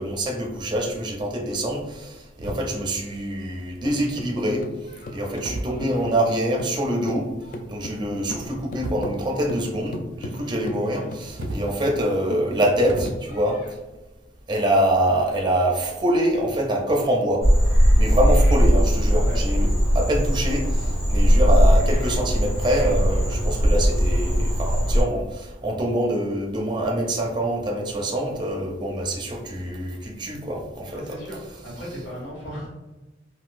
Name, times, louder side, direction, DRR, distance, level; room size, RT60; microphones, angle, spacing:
voice 1, 0.0-4.7 5.1-7.3 7.7-13.6 14.5-17.5 18.0-19.7 19.9-31.0, right 1 dB, 25° right, 0 dB, 0.5 m, -25 dB
sound 1, 2.3-3.0 4.1-4.4 5.2-6.3 7.8-9.1 9.4-10.2 11.1-13.1, right 1 dB, 90° right, 0.5 m, -36 dB
sound 2, 3.4-6.8 7.1-13.7, left 1 dB, 45° left, 0.3 m, -37 dB
Frog, 17.4-25.0, equal, 20° left, 1.4 m, -19 dB
voice 2, 30.9-32.7, equal, 80° left, -5 dB, 1.5 m, -36 dB
3.8 x 2.4 x 2.5 m, 1.1 s
head